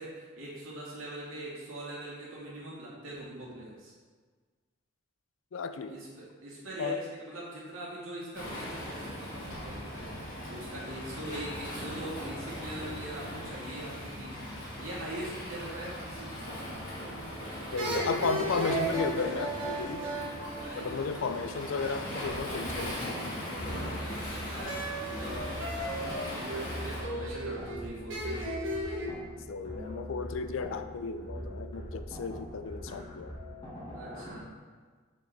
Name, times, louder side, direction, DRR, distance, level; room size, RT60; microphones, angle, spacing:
voice 1, 0.0-3.9 5.9-16.4 20.5-21.3 23.8-28.4 33.9-34.5, right 1 dB, 85° right, -5 dB, 2.1 m, -42 dB
voice 2, 5.5-6.0 6.8-7.0 17.7-20.1 20.8-23.4 29.5-33.4, left 4 dB, 75° left, 10 dB, 0.4 m, -34 dB
Waves surf, 8.3-27.0, equal, 40° left, 2.0 m, -39 dB
sound 1, 17.0-17.4 17.8-21.4 24.6-29.1, right 1 dB, 70° right, 1.3 m, -35 dB
sound 2, 22.3-34.4, equal, 25° left, 1.6 m, -42 dB
6.9 x 4.6 x 4.0 m, 1.5 s
head